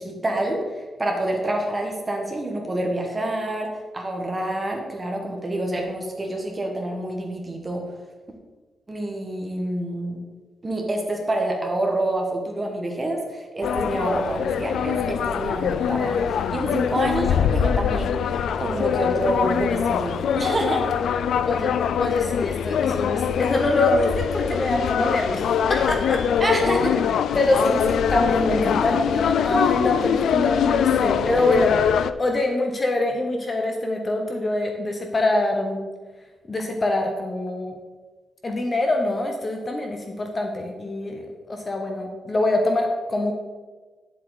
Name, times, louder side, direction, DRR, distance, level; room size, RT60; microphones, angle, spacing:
voice 1, 0.0-7.9 8.9-10.2 10.6-18.2 18.6-21.0 26.4-27.0 27.5-27.6, right 1 dB, 20° right, 1 dB, 1.5 m, -27 dB
sound 1, 13.6-32.1, left 8 dB, 80° left, 0.3 m, -23 dB
voice 2, 21.4-21.7 22.0-25.4 25.7-26.2 27.3-31.8 32.2-35.8 36.5-37.7 38.4-43.3, left 2 dB, 25° left, 3 dB, 0.9 m, -24 dB
9.8 x 7.6 x 4.0 m, 1.3 s
wide cardioid pair, 165°, 0 cm